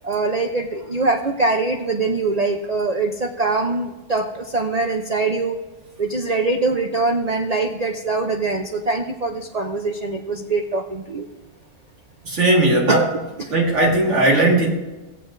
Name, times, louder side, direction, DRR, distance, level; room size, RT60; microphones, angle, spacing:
voice 1, 0.0-5.6 6.0-11.3 12.9-13.1 13.4-13.5, right 3 dB, 85° right, 3 dB, 0.3 m, -23 dB
voice 2, 12.2-13.1 13.5-14.7, right 2 dB, 50° right, -2 dB, 2.1 m, -17 dB
16.5 x 7.7 x 2.5 m, 1.1 s
omnidirectional pair, 1.6 m